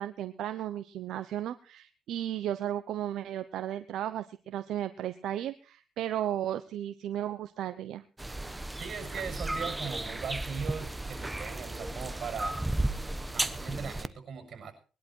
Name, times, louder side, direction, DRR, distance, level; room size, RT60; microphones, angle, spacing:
voice 1, 0.0-8.0, right 11 dB, 80° right, 11 dB, 0.9 m, -34 dB
sound 1, 8.2-14.1, right 1 dB, 10° right, 1.1 m, -34 dB
voice 2, 8.8-12.6 13.3-14.7, right 6 dB, 55° right, 6 dB, 7.2 m, -39 dB
21.0 x 11.5 x 4.7 m, 0.37 s
cardioid pair, 90°, 0 cm